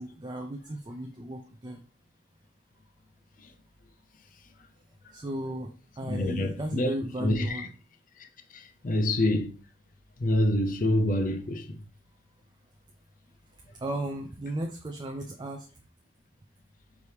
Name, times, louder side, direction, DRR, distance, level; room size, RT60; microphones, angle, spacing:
voice 1, 0.0-1.8 5.1-5.7 6.0-7.7 13.8-15.6, right 1 dB, 20° right, 0.4 m, -35 dB
voice 2, 6.0-6.9 7.2-7.7 8.5-9.5 10.2-11.8, left 1 dB, 40° left, 0.5 m, -26 dB
4.7 x 3.3 x 2.8 m
head